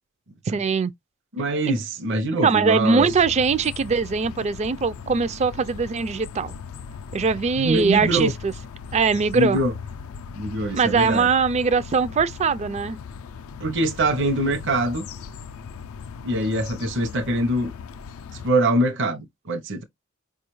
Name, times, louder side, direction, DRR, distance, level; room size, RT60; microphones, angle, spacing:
voice 1, 0.5-0.9 1.7-1.8 2.4-6.5 7.1-8.5 8.9-9.6 10.7-13.0, right 5 dB, 30° right, 0.3 m, -21 dB
voice 2, 1.3-3.1 7.5-8.3 9.3-9.7 10.4-11.3 13.6-15.1 16.2-17.7 18.3-19.8, right 1 dB, 60° right, 0.7 m, -23 dB
sound 1, 3.0-18.5, left 6 dB, 75° left, 0.4 m, -38 dB
4.8 x 2.3 x 3.0 m
head